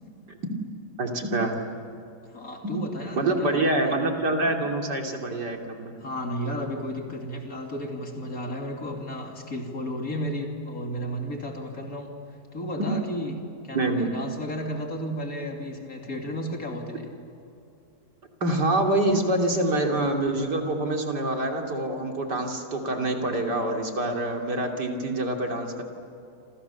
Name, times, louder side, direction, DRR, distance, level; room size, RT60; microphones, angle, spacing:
voice 1, 1.0-1.6 2.6-2.7 3.2-5.9 13.7-14.1 18.4-25.8, right 2 dB, 80° right, 2 dB, 3.6 m, -26 dB
voice 2, 2.3-3.7 6.0-12.1 12.5-13.4 13.6-17.1, equal, 55° left, 2 dB, 3.3 m, -33 dB
28.0 x 27.5 x 7.2 m, 2.7 s
omnidirectional pair, 1.8 m